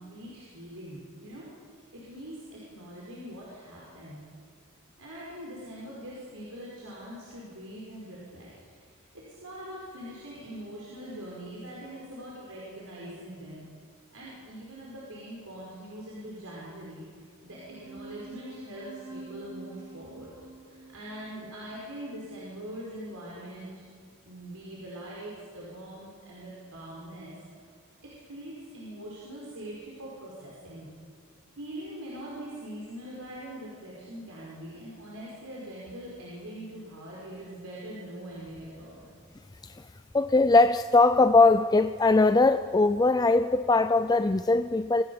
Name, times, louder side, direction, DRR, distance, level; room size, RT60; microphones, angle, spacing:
voice 1, 0.0-4.2 5.0-8.9 9.4-13.6 14.1-17.1 17.4-20.3 20.7-23.9 24.2-27.4 28.2-30.9 31.6-39.1, right 1 dB, 70° right, -5 dB, 5.2 m, -42 dB
sound 1, 17.5-22.4, right 3 dB, 50° right, 7.7 m, -47 dB
voice 2, 40.1-45.0, left 3 dB, 20° left, 10 dB, 0.4 m, -21 dB
26.5 x 15.5 x 7.2 m, 2.2 s
head